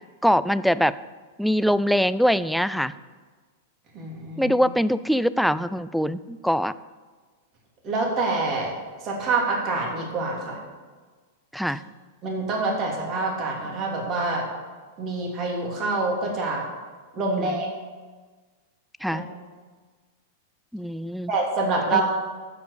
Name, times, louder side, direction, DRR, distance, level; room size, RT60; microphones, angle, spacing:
voice 1, 0.2-1.0 1.4-2.9 4.4-6.7 11.5-11.8 17.4-17.5 19.0-19.2 20.7-21.3 21.9-22.0, equal, ahead, 15 dB, 0.4 m, -23 dB
voice 2, 3.9-4.6 7.8-8.7 9.0-10.6 12.2-14.4 15.0-16.6 17.1-17.7 19.1-19.2 21.3-22.0, right 3 dB, 35° right, -1 dB, 3.0 m, -26 dB
14.0 x 5.1 x 6.8 m, 1.4 s
hypercardioid pair, 105°, 0 cm